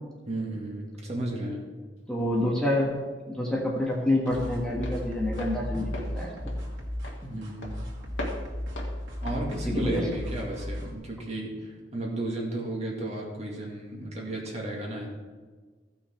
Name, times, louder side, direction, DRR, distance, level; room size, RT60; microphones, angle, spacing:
voice 1, 0.3-1.6 7.2-7.8 9.2-15.1, right 1 dB, 35° right, -2 dB, 2.0 m, -34 dB
Walk footsteps, 2.0-10.7, left 1 dB, 70° left, 1.9 m, -43 dB
voice 2, 2.1-2.9 3.3-6.5 9.6-10.0, left 1 dB, 5° left, -3 dB, 1.4 m, -27 dB
sound 1, 4.3-10.9, equal, 80° right, 2.3 m, -35 dB
15.0 x 6.1 x 4.4 m, 1.4 s
head